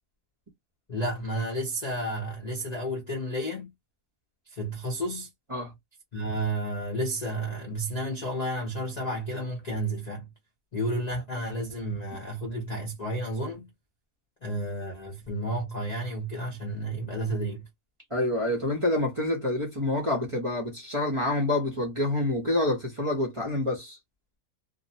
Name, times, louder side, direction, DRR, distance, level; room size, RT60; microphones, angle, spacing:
voice 1, 0.9-3.7 4.5-5.3 6.1-10.3 10.7-13.7 14.4-17.7, right 1 dB, 50° left, 0.5 m, -31 dB
voice 2, 18.1-24.0, left 1 dB, 30° right, 0.7 m, -27 dB
2.6 x 2.0 x 2.7 m
omnidirectional pair, 1.6 m